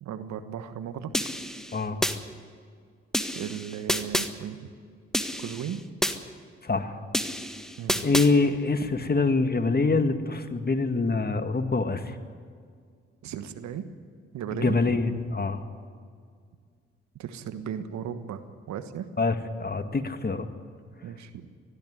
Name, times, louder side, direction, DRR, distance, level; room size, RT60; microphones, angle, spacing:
voice 1, 0.0-1.1 3.3-4.7 5.4-5.9 7.8-8.1 13.2-13.9 14.3-14.8 17.2-19.1 21.0-21.5, right 9 dB, 70° right, 10 dB, 1.4 m, -36 dB
sound 1, 1.1-2.2 3.1-4.3 5.1-6.2 7.1-8.3, equal, ahead, 1.6 m, -29 dB
voice 2, 6.6-7.0 8.0-12.2 14.5-15.6 19.2-19.3 19.6-20.5, left 3 dB, 30° left, 8 dB, 1.9 m, -25 dB
20.5 x 14.0 x 9.6 m, 2.1 s
hypercardioid pair, 45°, 30 cm